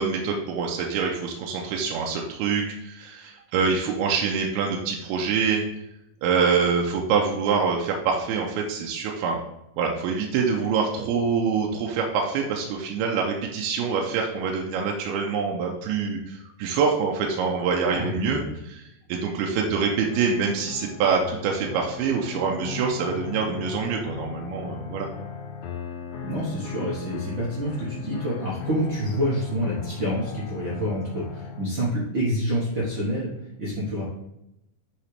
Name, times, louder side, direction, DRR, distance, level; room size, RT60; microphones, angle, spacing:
voice 1, 0.0-5.6 6.2-9.4 9.8-18.4 18.7-18.8 19.1-25.1, right 5 dB, 90° right, 0 dB, 2.6 m, -25 dB
voice 2, 17.9-18.6 26.2-33.3 33.6-34.0, equal, 70° right, -7 dB, 1.1 m, -27 dB
sound 1, 19.6-31.6, left 6 dB, 90° left, 1.5 m, -37 dB
8.5 x 4.0 x 3.3 m, 0.87 s
omnidirectional pair, 4.4 m